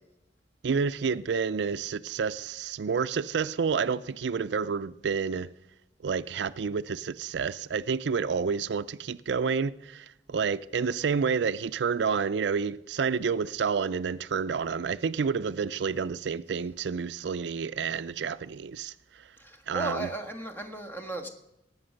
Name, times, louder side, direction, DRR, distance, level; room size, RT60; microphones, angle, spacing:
voice 1, 0.6-5.5 6.0-18.9 19.7-20.1, right 5 dB, 75° right, 0.4 m, -29 dB
voice 2, 19.4-21.3, right 2 dB, 10° left, 1.5 m, -35 dB
19.0 x 7.9 x 6.4 m
head